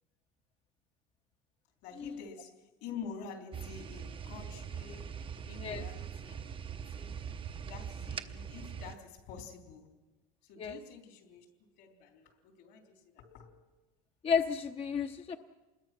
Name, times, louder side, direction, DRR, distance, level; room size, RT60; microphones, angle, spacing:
voice 1, 1.8-6.5 6.9-9.9 10.4-11.5 11.8-13.5, left 6 dB, 75° left, 4 dB, 3.7 m, -48 dB
sound 1, 3.5-8.9, right 7 dB, 30° right, 0.8 m, -42 dB
voice 2, 14.2-15.4, left 6 dB, 30° left, 6 dB, 0.9 m, -32 dB
26.0 x 21.0 x 6.1 m, 1.1 s
supercardioid pair, 105°, 18 cm